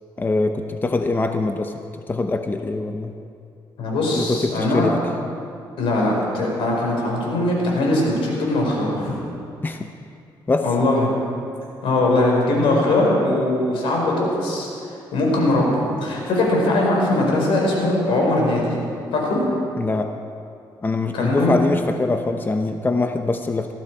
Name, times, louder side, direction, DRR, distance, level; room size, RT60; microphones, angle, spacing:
voice 1, 0.2-3.1 4.1-5.0 9.6-9.9 10.5-10.6 19.8-20.1 20.8-23.7, left 3 dB, 20° left, 6 dB, 0.8 m, -23 dB
voice 2, 3.8-4.9 5.8-9.2 10.6-11.2 11.8-14.7 15.1-18.7 19.1-19.4 21.1-21.6, left 2 dB, 80° left, -2 dB, 5.1 m, -20 dB
20.5 x 14.5 x 4.8 m, 2.5 s
cardioid pair, 105°, 9 cm